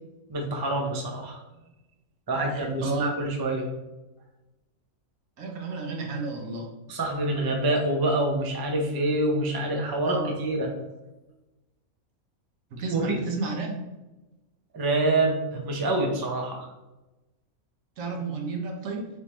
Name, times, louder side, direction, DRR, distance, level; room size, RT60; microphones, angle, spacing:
voice 1, 0.3-1.4 2.3-3.7 6.9-10.7 12.9-13.2 14.7-16.7, right 2 dB, 35° right, 1 dB, 0.3 m, -26 dB
voice 2, 2.5-3.1 5.4-6.7 10.1-10.4 12.7-13.7 18.0-19.1, right 3 dB, 65° right, 1 dB, 1.2 m, -32 dB
4.2 x 3.6 x 3.0 m, 1.0 s
omnidirectional pair, 1.5 m